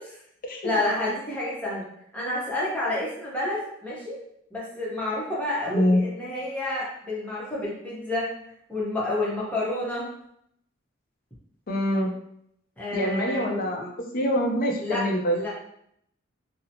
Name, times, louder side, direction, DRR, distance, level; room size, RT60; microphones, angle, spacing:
voice 1, 0.6-1.8 2.1-4.2 4.5-8.3 8.7-10.1 12.8-13.5 14.8-15.5, left 1 dB, 5° left, -7 dB, 0.8 m, -29 dB
voice 2, 5.7-6.0 11.7-12.1 12.9-15.4, equal, 45° left, 2 dB, 0.5 m, -25 dB
2.9 x 2.0 x 2.7 m, 0.71 s
head